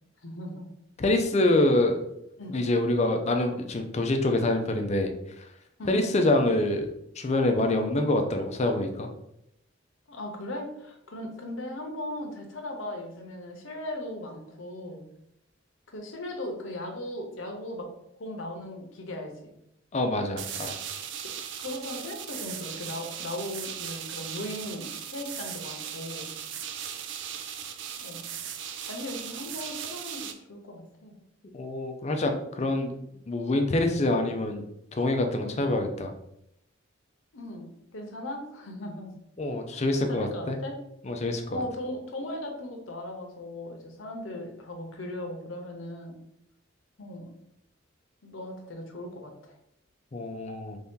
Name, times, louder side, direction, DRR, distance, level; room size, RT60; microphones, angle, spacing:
voice 1, 0.2-0.7 2.4-2.6 5.8-6.0 10.1-15.0 15.9-17.9 18.2-19.5 21.6-26.3 28.0-28.2 28.8-31.1 35.4-35.6 37.3-39.2 39.5-39.8 40.1-40.8 41.5-46.2 47.0-47.4 48.2-49.5, left 1 dB, 80° left, 3 dB, 0.8 m, -38 dB
voice 2, 1.0-2.0 2.5-5.1 5.9-6.9 7.2-9.1 19.9-20.8 31.5-32.9 33.3-34.6 34.9-36.1 39.4-40.6 41.1-41.6 50.1-50.8, left 2 dB, 35° left, 5 dB, 0.5 m, -26 dB
sound 1, 20.4-30.3, right 8 dB, 65° right, 0.4 m, -38 dB
3.3 x 2.7 x 3.6 m, 0.78 s
head